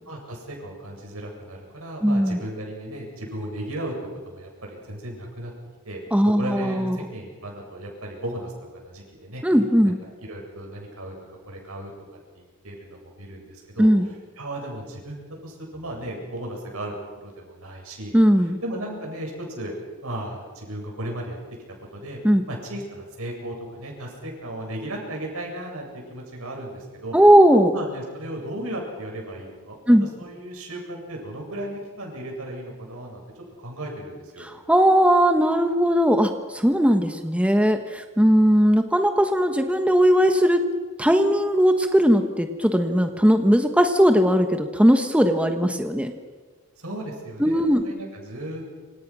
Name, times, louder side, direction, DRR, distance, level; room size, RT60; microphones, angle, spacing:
voice 1, 0.1-3.9 4.3-5.5 5.8-9.4 10.2-11.1 11.5-11.9 12.3-13.9 14.4-16.9 17.2-18.1 18.6-19.7 20.0-21.4 21.9-22.2 22.5-27.2 27.7-29.8 30.2-33.2 33.6-34.5 46.8-48.6, right 1 dB, 70° right, 0 dB, 7.8 m, -35 dB
voice 2, 2.0-2.4 6.1-7.0 9.4-10.0 13.8-14.1 18.1-18.6 22.2-22.4 27.1-27.7 29.9-30.1 34.4-40.6 41.0-46.1 47.4-47.8, equal, 5° right, 6 dB, 1.2 m, -18 dB
27.0 x 26.5 x 6.2 m, 1.4 s
head